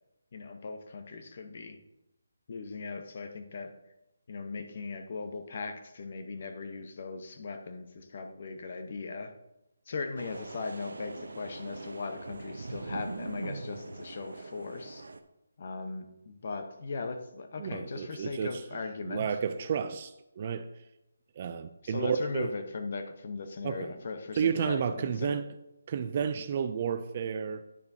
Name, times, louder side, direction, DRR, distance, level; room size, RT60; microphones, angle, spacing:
voice 1, 0.3-1.8 2.5-3.7 4.3-9.3 9.9-15.1 15.6-19.3 21.8-25.4, left 4 dB, 40° left, 0.8 m, -38 dB
sound 1, 10.2-15.2, right 3 dB, 80° right, 0.7 m, -42 dB
voice 2, 17.6-18.8 19.1-20.7 21.4-22.5 23.6-23.9 24.4-25.4 25.9-27.6, right 7 dB, 30° right, 0.3 m, -31 dB
10.0 x 6.6 x 2.7 m
hypercardioid pair, 170°, 0 cm